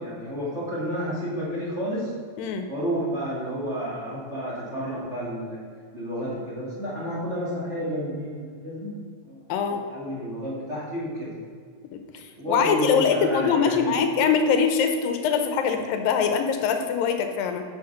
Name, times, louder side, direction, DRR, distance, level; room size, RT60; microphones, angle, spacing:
voice 1, 0.0-2.1 2.7-5.6 5.9-8.9 9.2-9.4 9.9-11.3 12.4-13.8, equal, 25° right, -6 dB, 2.1 m, -30 dB
voice 2, 9.5-9.8 11.9-17.6, left 6 dB, 85° left, 6 dB, 2.5 m, -23 dB
10.5 x 5.8 x 5.8 m, 2.1 s
omnidirectional pair, 4.1 m